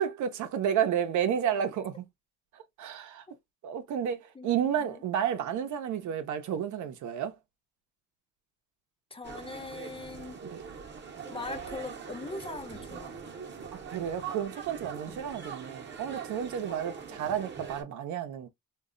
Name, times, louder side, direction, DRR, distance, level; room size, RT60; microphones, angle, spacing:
voice 1, 0.0-2.0 2.8-3.2 3.6-7.3 10.4-10.6 13.7-18.5, right 9 dB, 75° right, 0.6 m, -31 dB
voice 2, 9.1-10.4 11.3-13.3 15.1-15.3, left 3 dB, 20° left, 0.4 m, -41 dB
sound 1, 9.2-17.8, right 6 dB, 35° right, 0.8 m, -42 dB
2.3 x 2.0 x 3.6 m
cardioid pair, 90°, 30 cm